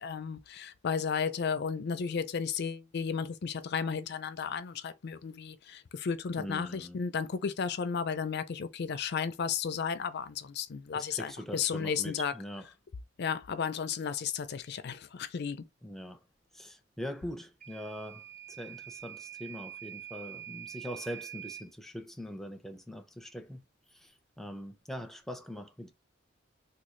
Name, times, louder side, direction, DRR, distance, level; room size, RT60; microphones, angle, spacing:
voice 1, 0.0-12.3 13.2-15.6, left 6 dB, 55° left, 0.4 m, -34 dB
voice 2, 6.4-7.0 10.9-12.7 15.8-16.2 16.5-23.6 23.9-25.9, equal, ahead, 0.5 m, -42 dB
Microwave oven / Alarm, 17.6-21.7, right 11 dB, 40° right, 1.1 m, -45 dB
3.6 x 2.3 x 3.1 m
head